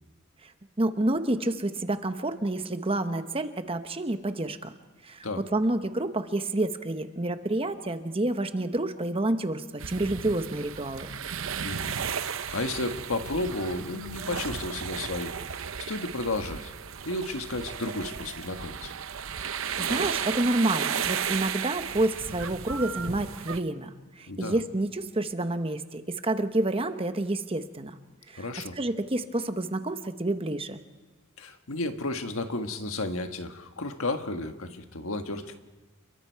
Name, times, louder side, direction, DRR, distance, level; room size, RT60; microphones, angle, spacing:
voice 1, 0.8-4.7 5.0-5.3 5.5-11.1 19.8-23.9 24.2-27.9 28.3-28.5 28.8-30.8, right 2 dB, 25° right, 9 dB, 1.0 m, -29 dB
sound 1, 9.8-23.6, right 7 dB, 70° right, 0.8 m, -34 dB
voice 2, 11.6-11.9 12.2-15.3 15.8-16.7 17.0-18.9 24.3-24.6 28.3-28.8 31.4-35.6, left 2 dB, 75° left, 6 dB, 1.6 m, -33 dB
29.0 x 22.5 x 4.7 m, 1.2 s
head